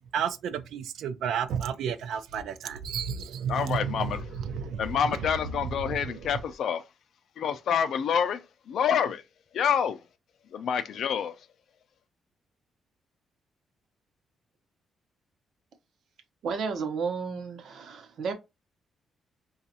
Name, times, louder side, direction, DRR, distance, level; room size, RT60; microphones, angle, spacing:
voice 1, 0.1-5.3 5.7-6.2, right 7 dB, 85° right, 0.5 m, -32 dB
voice 2, 3.5-4.2 4.8-6.8 7.4-9.2 9.5-10.0 10.5-11.3, left 7 dB, 65° left, 0.4 m, -27 dB
voice 3, 16.4-18.3, right 5 dB, 60° right, 0.8 m, -32 dB
4.9 x 2.3 x 2.7 m
cardioid pair, 150°, 0 cm